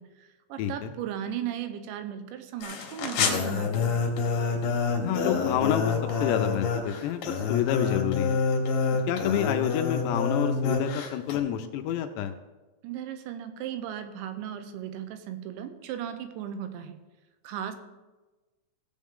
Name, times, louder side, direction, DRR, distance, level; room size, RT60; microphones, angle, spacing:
voice 1, 0.0-4.0 12.8-17.0 17.4-17.8, right 10 dB, 85° right, 8 dB, 3.1 m, -36 dB
voice 2, 0.6-0.9 5.0-5.9 6.2-8.4 9.1-12.3, left 10 dB, 80° left, 7 dB, 2.6 m, -28 dB
sound 1, 2.6-11.4, left 5 dB, 65° left, 2.6 m, -27 dB
sound 2, 5.2-7.6, right 2 dB, 65° right, 5.7 m, -42 dB
16.5 x 7.3 x 3.7 m, 1.2 s
omnidirectional pair, 5.3 m